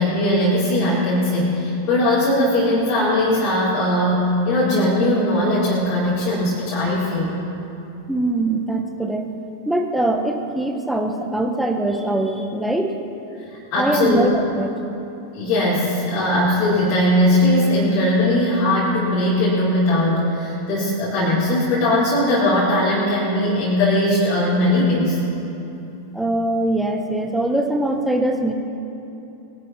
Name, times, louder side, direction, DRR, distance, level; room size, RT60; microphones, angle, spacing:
voice 1, 0.0-7.4 13.7-14.2 15.3-25.2, left 1 dB, 40° left, -9 dB, 4.1 m, -19 dB
voice 2, 8.1-9.3 9.7-12.9 13.8-14.7 26.1-28.5, right 1 dB, 5° right, 3 dB, 1.4 m, -22 dB
23.0 x 12.0 x 4.3 m, 2.9 s
figure-of-eight pair, 90°, 0 cm